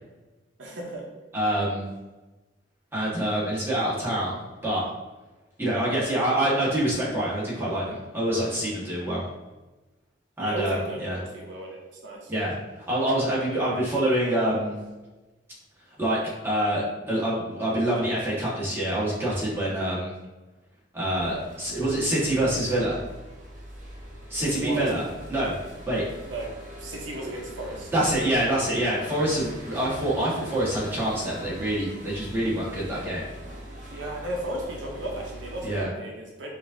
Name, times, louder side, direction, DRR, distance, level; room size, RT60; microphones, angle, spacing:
voice 1, 0.6-1.0 10.4-12.3 24.4-24.9 26.3-26.5 26.8-27.9 33.9-36.5, right 1 dB, 80° right, -1 dB, 0.7 m, -35 dB
voice 2, 1.3-1.8 2.9-4.3 4.6-4.8 5.6-9.2 10.4-11.2 12.3-12.5 12.9-14.7 16.0-16.2 16.4-20.1 20.9-23.0 24.3-25.0 25.3-25.6 25.9-26.0 27.9-33.2 35.6-35.9, right 1 dB, 15° right, -8 dB, 1.3 m, -26 dB
sound 1, 21.1-35.8, equal, 45° right, 0.7 m, -42 dB
4.8 x 2.6 x 2.6 m, 1.1 s
head